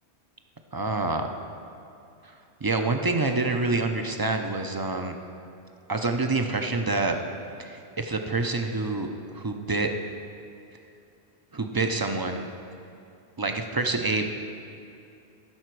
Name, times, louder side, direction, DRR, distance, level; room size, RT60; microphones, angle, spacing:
voice 1, 0.7-1.4 2.6-5.2 5.9-7.2 7.6-9.1 9.3-9.9 11.5-12.5 13.4-14.3, right 3 dB, 30° right, 5 dB, 0.4 m, -27 dB
15.0 x 6.7 x 4.7 m, 2.6 s
omnidirectional pair, 1.1 m